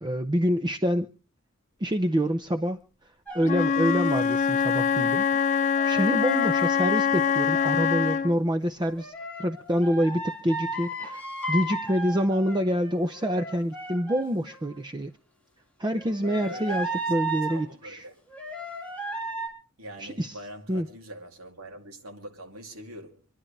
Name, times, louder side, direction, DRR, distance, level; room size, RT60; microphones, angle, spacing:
voice 1, 0.0-1.1 1.8-2.8 3.3-5.5 5.8-9.1 9.4-11.2 11.5-15.1 15.8-18.1 20.0-20.4 20.7-20.9, equal, 20° right, 0.6 m, -26 dB
sound 1, 3.3-4.2 5.3-7.7 8.8-14.8 16.0-17.6 18.3-19.5, right 1 dB, 5° left, 3.3 m, -35 dB
Wind instrument woodwind instrument, 3.4-8.4, left 6 dB, 35° left, 0.6 m, -24 dB
voice 2, 16.2-17.0 17.5-18.1 19.8-23.3, right 1 dB, 85° right, 2.7 m, -43 dB
27.0 x 11.0 x 3.3 m
head